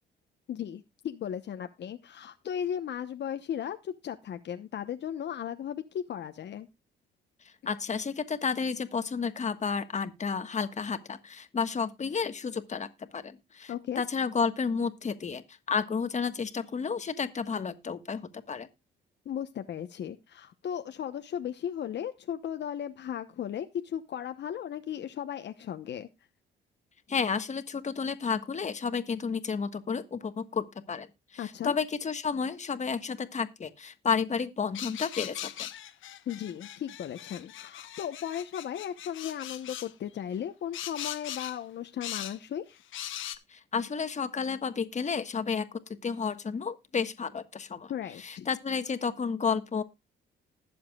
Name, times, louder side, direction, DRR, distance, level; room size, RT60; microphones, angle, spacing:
voice 1, 0.5-6.7 13.7-14.0 19.2-26.1 31.4-31.7 36.3-42.8 47.9-48.5, left 9 dB, 60° left, 1.0 m, -36 dB
voice 2, 7.7-18.2 18.5-18.7 27.1-31.1 31.3-35.7 43.5-45.7 46.0-47.9 48.2-49.8, left 5 dB, 35° left, 1.4 m, -31 dB
sound 1, 34.7-39.9 40.7-41.6 42.0-42.4 42.9-43.4, left 12 dB, 80° left, 1.3 m, -40 dB
20.0 x 7.3 x 2.3 m
cardioid pair, 90°, 20 cm